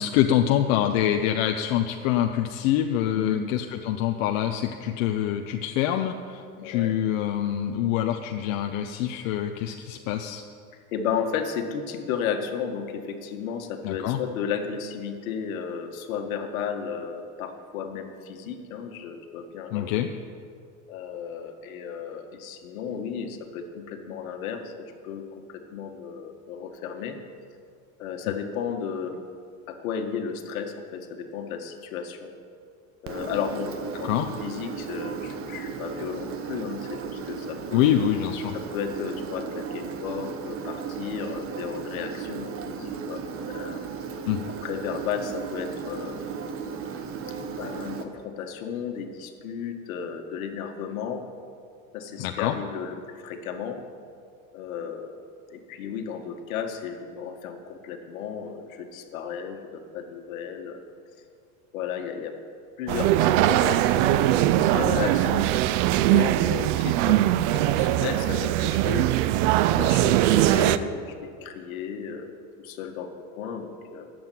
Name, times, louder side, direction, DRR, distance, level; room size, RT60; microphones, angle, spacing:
voice 1, 0.0-10.4 13.8-14.2 19.7-20.1 34.0-34.3 37.7-38.6 44.3-44.4 52.2-52.5, left 11 dB, 65° left, 5 dB, 0.9 m, -25 dB
voice 2, 6.6-7.0 10.9-20.1 20.9-25.2 25.5-27.2 28.0-29.2 29.7-32.3 33.0-34.1 34.4-37.9 38.5-43.8 44.6-46.2 47.4-51.2 51.9-53.8 54.5-55.2 55.5-60.8 61.7-62.3 62.8-65.5 66.1-69.1 69.8-74.1, left 7 dB, 85° left, 5 dB, 1.8 m, -34 dB
Engine, 33.1-48.0, right 6 dB, 30° right, 1.2 m, -35 dB
sound 1, 62.9-70.8, right 14 dB, 65° right, 0.7 m, -21 dB
12.0 x 7.9 x 9.3 m, 2.3 s
supercardioid pair, 135°, 41 cm